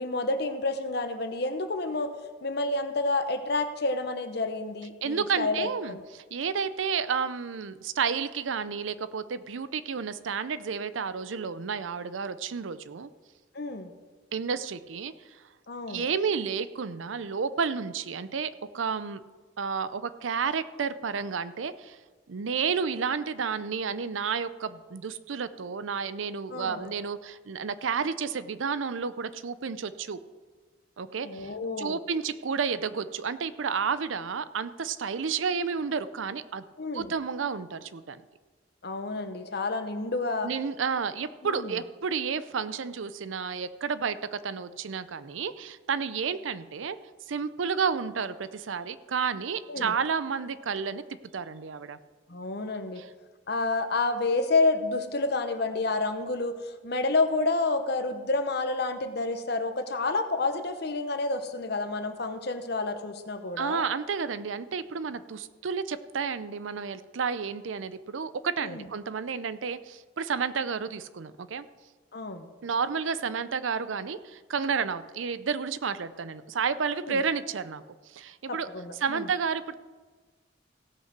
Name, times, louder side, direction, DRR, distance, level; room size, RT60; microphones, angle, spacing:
voice 1, 0.0-2.1 2.4-6.0 13.5-13.9 15.7-16.1 26.5-26.9 31.2-32.0 36.8-37.1 38.8-40.5 41.4-41.7 49.7-49.9 52.3-53.0 53.5-63.8 68.6-68.9 72.1-72.5 77.1-77.2 78.5-79.3, left 3 dB, 55° left, 8 dB, 1.0 m, -29 dB
voice 2, 5.0-13.1 14.3-15.1 15.9-19.2 19.6-22.0 22.3-30.2 31.0-36.6 36.9-38.2 40.4-47.0 47.3-51.0 51.3-52.0 53.0-53.1 63.6-71.7 72.6-77.8 78.1-78.7 79.0-79.7, right 6 dB, 85° right, 14 dB, 0.6 m, -31 dB
16.5 x 5.7 x 6.0 m, 1.4 s
head